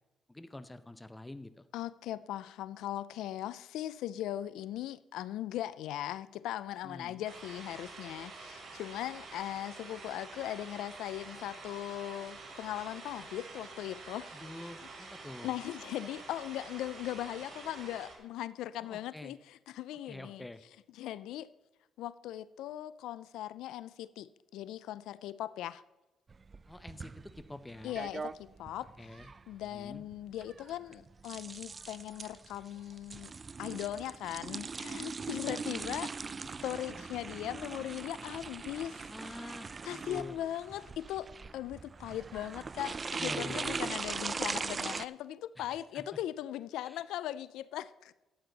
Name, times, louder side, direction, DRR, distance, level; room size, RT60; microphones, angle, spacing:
voice 1, 0.3-1.7 6.8-7.2 14.3-15.6 18.8-19.3 20.1-20.6 26.7-28.0 29.0-29.3 29.7-30.0 35.4-35.6 39.1-40.4 43.2-43.9 45.6-46.0 46.8-47.0, left 1 dB, 10° left, 0.8 m, -46 dB
voice 2, 1.7-14.3 15.4-20.4 21.0-21.5 22.0-25.8 27.8-29.1 29.5-33.3 33.6-36.1 36.4-39.6 39.8-41.3 41.5-48.1, left 12 dB, 90° left, 0.3 m, -39 dB
sound 1, 7.2-18.1, right 3 dB, 55° right, 3.4 m, -48 dB
sound 2, 26.3-45.1, right 4 dB, 35° right, 0.4 m, -41 dB
13.0 x 8.7 x 4.0 m
cardioid pair, 90°, 0 cm